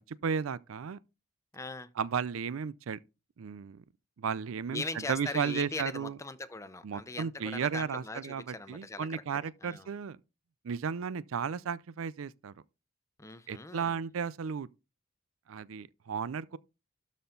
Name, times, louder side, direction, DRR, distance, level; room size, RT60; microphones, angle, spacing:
voice 1, 0.2-1.0 2.0-3.0 3.4-3.8 4.2-6.2 6.8-10.2 10.6-12.5 13.5-14.7 15.5-16.6, right 6 dB, 85° right, 0.4 m, -34 dB
voice 2, 1.5-1.9 4.7-9.9 13.2-14.0, left 3 dB, 15° left, 0.6 m, -40 dB
12.5 x 4.3 x 3.8 m
head